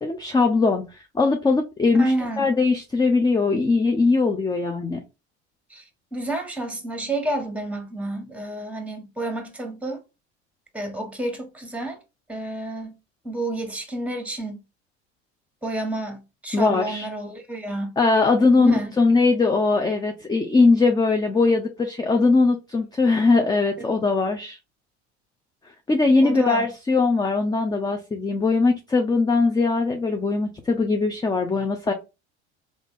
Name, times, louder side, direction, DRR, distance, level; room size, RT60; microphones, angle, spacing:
voice 1, 0.0-5.0 16.5-17.1 18.0-24.6 25.9-31.9, left 3 dB, 10° left, 0.5 m, -20 dB
voice 2, 2.0-2.5 5.7-5.8 6.1-10.0 10.7-12.0 12.3-13.0 13.2-14.6 15.6-18.0 18.6-18.9 26.2-26.7 31.6-31.7, right 2 dB, 5° right, 1.3 m, -29 dB
3.6 x 2.4 x 3.7 m
hypercardioid pair, 75°, 34 cm